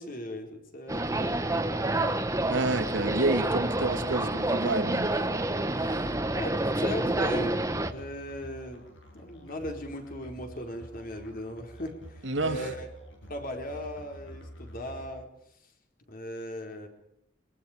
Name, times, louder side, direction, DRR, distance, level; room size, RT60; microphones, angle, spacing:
voice 1, 0.0-1.5 5.9-6.0 6.3-7.6 7.9-8.8 9.1-12.9 13.3-15.3 15.6-15.7 16.1-16.9, equal, 50° left, 4.3 m, -38 dB
sound 1, 0.9-7.9, right 2 dB, 15° right, 1.5 m, -28 dB
voice 2, 2.5-5.1 12.2-12.7, right 2 dB, 85° right, 2.9 m, -29 dB
Musical instrument, 5.5-15.1, equal, 90° left, 8.0 m, -48 dB
25.5 x 23.5 x 5.1 m
head